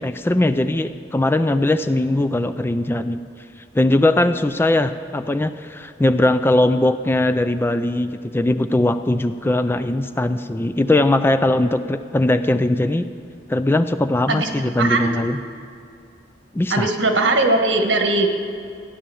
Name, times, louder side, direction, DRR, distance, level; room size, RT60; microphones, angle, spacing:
voice 1, 0.0-3.2 3.7-13.1 13.5-15.4 16.5-16.9, left 1 dB, 10° left, 10 dB, 0.4 m, -20 dB
voice 2, 14.8-15.1 16.7-18.5, right 2 dB, 75° right, 4 dB, 1.5 m, -19 dB
15.5 x 10.0 x 7.0 m, 2.4 s
head